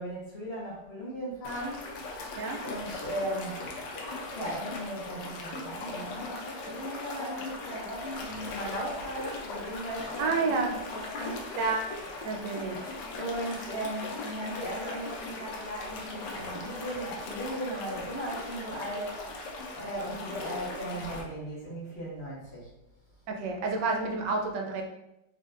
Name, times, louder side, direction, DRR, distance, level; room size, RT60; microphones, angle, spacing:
voice 1, 0.0-1.8 2.6-3.5 4.3-10.5 10.9-11.5 13.1-19.2 19.7-22.7, right 1 dB, 45° left, -6 dB, 0.9 m, -37 dB
sound 1, 1.4-21.2, left 2 dB, 80° left, 1.3 m, -39 dB
voice 2, 10.2-10.7 11.5-11.8 12.2-12.8 23.3-24.8, right 4 dB, 85° right, 2 dB, 1.3 m, -29 dB
4.2 x 3.2 x 2.5 m, 0.87 s
omnidirectional pair, 1.9 m